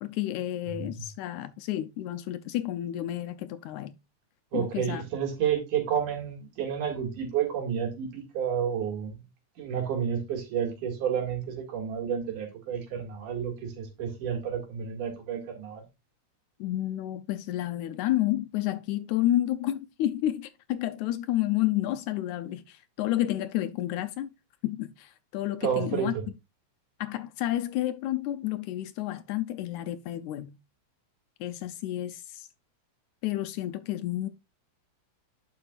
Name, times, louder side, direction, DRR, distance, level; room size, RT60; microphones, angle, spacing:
voice 1, 0.0-4.0 4.5-5.0 16.6-24.3 24.6-26.1 27.0-30.6 31.4-32.5 33.2-34.3, left 14 dB, 80° left, 1.8 m, -30 dB
voice 2, 4.5-9.2 9.6-15.8 25.6-26.2, right 8 dB, 75° right, 3.5 m, -30 dB
9.8 x 6.8 x 2.4 m
omnidirectional pair, 3.7 m